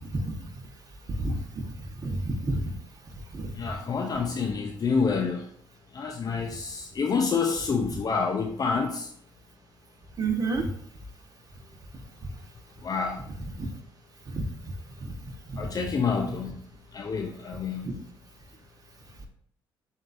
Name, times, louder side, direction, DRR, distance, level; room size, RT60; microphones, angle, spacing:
voice 1, 1.2-1.6 2.0-2.6 3.3-3.5 10.2-10.7 13.6-13.7 14.3-14.7 15.0-15.1 15.5-15.6, right 3 dB, 40° right, 3 dB, 1.1 m, -30 dB
voice 2, 3.5-5.4 5.9-9.1 12.8-13.2 15.6-16.6 16.9-17.9, left 5 dB, 40° left, 2 dB, 0.6 m, -28 dB
7.5 x 2.6 x 2.6 m, 0.62 s
supercardioid pair, 75°, 9 cm